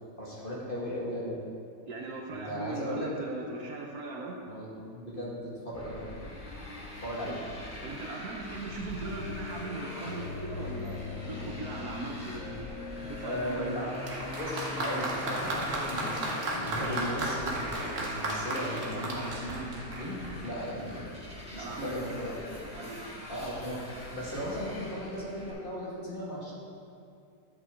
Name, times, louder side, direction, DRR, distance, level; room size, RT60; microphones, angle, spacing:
voice 1, 0.2-1.4 2.3-3.1 4.5-6.1 7.0-7.4 13.2-13.8 14.4-21.1 21.5-22.6 23.3-23.8 24.1-26.5, equal, 30° left, -5 dB, 1.7 m, -36 dB
voice 2, 1.9-4.4 7.3-7.4 7.8-14.1 21.5-22.0 22.7-23.2, right 3 dB, 65° right, 1 dB, 1.2 m, -39 dB
Motorcycle, 5.7-25.5, left 1 dB, 5° right, 1.8 m, -44 dB
sound 1, 9.0-17.0, left 4 dB, 65° left, 0.9 m, -42 dB
Applause, 14.0-20.5, right 1 dB, 50° right, 1.4 m, -34 dB
12.0 x 7.4 x 3.6 m, 2.4 s
omnidirectional pair, 1.9 m